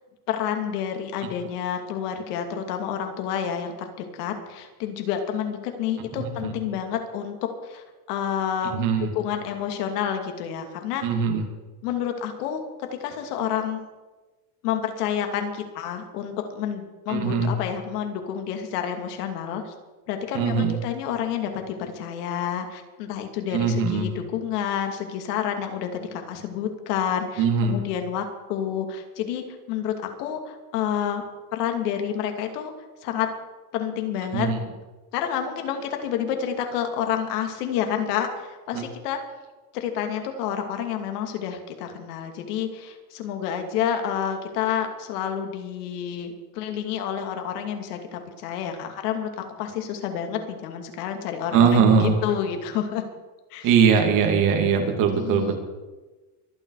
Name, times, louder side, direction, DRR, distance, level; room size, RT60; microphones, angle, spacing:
voice 1, 0.3-7.4 7.6-11.0 11.8-12.6 13.0-13.8 14.6-19.7 20.1-31.2 31.5-32.7 33.0-33.3 33.7-34.5 35.1-39.2 39.7-53.0 53.5-53.7 55.1-55.6, left 9 dB, 80° left, 5 dB, 2.7 m, -29 dB
voice 2, 8.7-9.1 11.0-11.4 17.1-17.5 20.3-20.8 23.5-24.1 27.4-27.8 34.3-34.6 38.7-38.8 51.5-52.1 53.6-55.6, right 6 dB, 45° right, 3 dB, 2.8 m, -20 dB
24.5 x 9.3 x 4.9 m, 1.2 s
cardioid pair, 155°, 45 cm